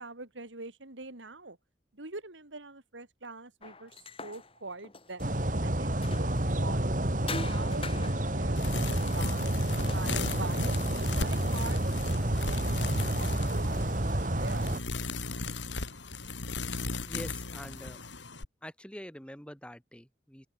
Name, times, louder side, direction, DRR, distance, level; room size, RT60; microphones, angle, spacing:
voice 1, 0.0-1.6 1.9-6.9 7.4-10.8 11.1-14.1 14.3-14.7, right 3 dB, 85° right, 3.2 m, -44 dB
sound 1, 3.6-6.6 7.3-11.1, left 3 dB, 30° left, 5.9 m, -44 dB
sound 2, 5.2-14.8, right 1 dB, 45° right, 2.4 m, -29 dB
sound 3, 8.6-18.4, left 3 dB, 80° left, 5.5 m, -37 dB
voice 2, 17.0-18.0 18.6-20.5, equal, 5° left, 5.9 m, -45 dB
head